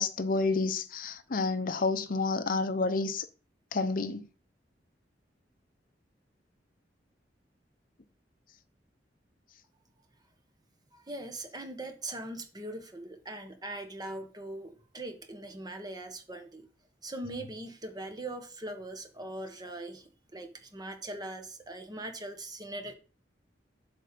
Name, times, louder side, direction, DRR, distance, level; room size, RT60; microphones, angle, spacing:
voice 1, 0.0-3.3 3.7-4.2, left 3 dB, 50° left, 0.7 m, -29 dB
voice 2, 10.9-16.6 17.0-22.9, right 1 dB, 25° right, 1.4 m, -41 dB
7.6 x 5.3 x 6.7 m
head